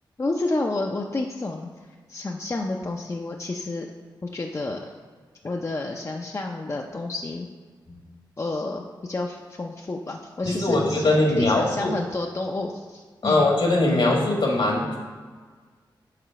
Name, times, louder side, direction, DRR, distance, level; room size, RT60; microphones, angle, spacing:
voice 1, 0.2-1.7 2.1-3.9 4.2-4.9 5.4-7.5 8.4-13.5, left 2 dB, 35° left, 1 dB, 0.5 m, -30 dB
voice 2, 10.4-11.9 13.2-15.0, left 2 dB, 70° left, -1 dB, 1.6 m, -21 dB
5.0 x 3.9 x 5.7 m, 1.5 s
cardioid pair, 50°, 9 cm